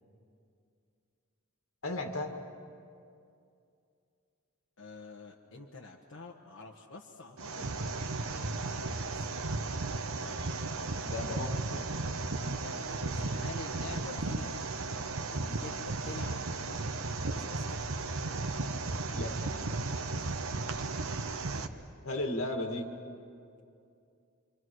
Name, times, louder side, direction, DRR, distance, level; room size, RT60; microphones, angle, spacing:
voice 1, 1.8-2.3 10.2-10.6 11.1-11.8 19.1-19.3 22.0-22.9, left 2 dB, 90° left, 4 dB, 2.1 m, -35 dB
voice 2, 4.8-8.0 8.3-8.9 12.6-14.5 15.3-15.7 16.0-17.0 17.2-17.8 19.9-20.4, left 3 dB, 70° left, -1 dB, 1.4 m, -47 dB
sound 1, 7.4-21.7, right 3 dB, 85° right, 1.1 m, -35 dB
27.5 x 25.5 x 6.3 m, 2.5 s
head